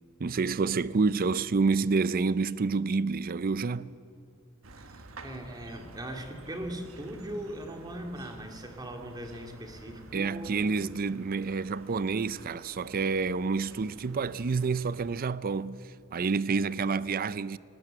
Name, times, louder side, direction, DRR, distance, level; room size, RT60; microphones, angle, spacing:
voice 1, 0.2-3.9 10.1-15.8 16.1-17.6, right 4 dB, 45° right, 0.5 m, -28 dB
sound 1, 4.6-15.2, right 2 dB, 80° right, 1.4 m, -50 dB
voice 2, 4.8-10.7, right 1 dB, 20° right, 2.2 m, -40 dB
19.5 x 18.5 x 7.9 m
head